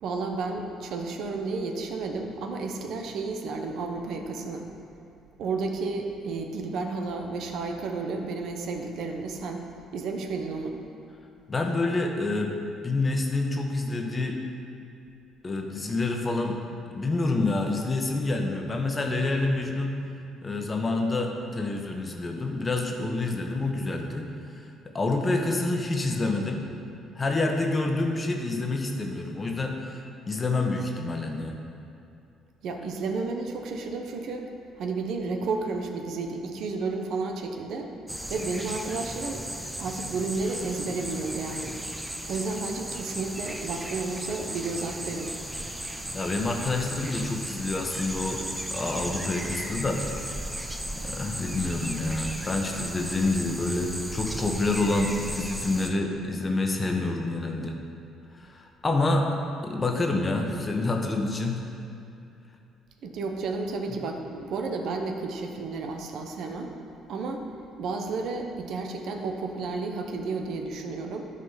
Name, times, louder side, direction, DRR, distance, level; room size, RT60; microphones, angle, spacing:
voice 1, 0.0-4.7 5.4-9.6 9.9-10.8 32.6-34.5 34.8-37.9 38.3-39.4 39.8-41.8 42.3-45.3 63.0-66.7 67.1-67.4 67.8-71.3, right 3 dB, 65° right, 4 dB, 0.8 m, -32 dB
voice 2, 11.5-12.6 12.8-14.4 15.4-16.6 16.9-19.9 20.4-24.3 24.5-24.6 24.9-26.7 27.1-31.6 46.1-48.4 48.7-50.0 50.5-50.7 51.0-57.8 58.4-59.3 59.6-61.6, left 2 dB, 30° left, 2 dB, 1.2 m, -27 dB
sound 1, 38.1-55.9, right 1 dB, 10° right, 0.8 m, -36 dB
12.0 x 4.1 x 5.6 m, 2.6 s
hypercardioid pair, 60°, 0 cm